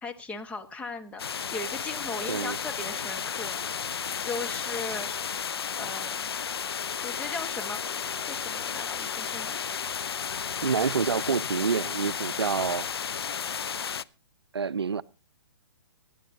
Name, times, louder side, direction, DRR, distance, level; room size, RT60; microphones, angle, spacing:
voice 1, 0.0-3.6 4.2-5.1 5.8-6.3 7.0-8.0 8.3-9.6, left 3 dB, 10° left, 1.4 m, -38 dB
sound 1, 1.2-14.0, left 7 dB, 75° left, 0.5 m, -33 dB
sound 2, 7.0-11.9, left 10 dB, 45° left, 1.8 m, -53 dB
voice 2, 10.6-12.9 14.5-15.0, right 6 dB, 80° right, 0.5 m, -27 dB
24.0 x 10.0 x 2.8 m
figure-of-eight pair, 125°, 13 cm